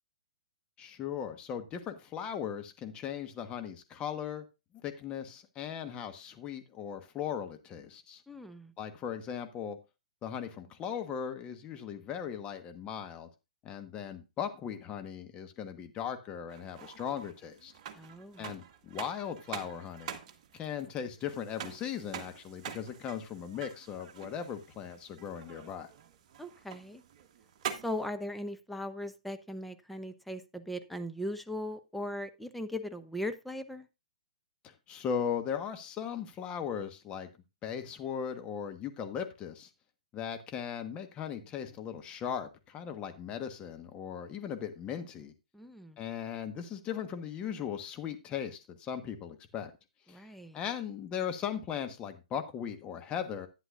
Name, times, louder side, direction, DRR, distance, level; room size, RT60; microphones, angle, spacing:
voice 1, 0.8-4.4 4.8-8.2 8.8-9.8 10.2-13.3 13.6-17.7 18.4-20.2 20.5-25.9 34.6-37.3 37.6-39.7 40.1-45.3 46.0-49.7 50.1-50.2 50.5-53.5, left 8 dB, 25° left, 7 dB, 1.3 m, -38 dB
voice 2, 8.3-8.7 17.9-18.5 26.4-27.0 27.8-33.9 45.5-46.0 50.1-50.6, left 1 dB, ahead, 8 dB, 0.8 m, -39 dB
sound 1, 16.5-28.1, right 8 dB, 45° right, 1.3 m, -46 dB
11.0 x 9.8 x 2.5 m, 0.26 s
hypercardioid pair, 125°, 4 cm